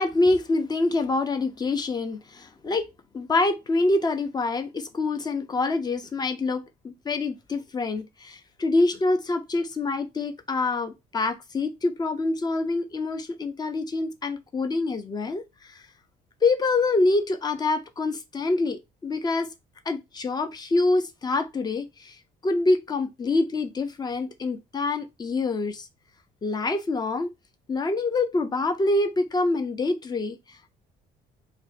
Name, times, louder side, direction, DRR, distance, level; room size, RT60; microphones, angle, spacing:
voice 1, 0.0-2.9 3.1-15.8 16.4-19.5 19.9-25.9 26.4-27.3 27.7-30.4, left 3 dB, 25° left, 0.5 m, -26 dB
2.6 x 2.1 x 4.0 m
cardioid pair, 110°, 17 cm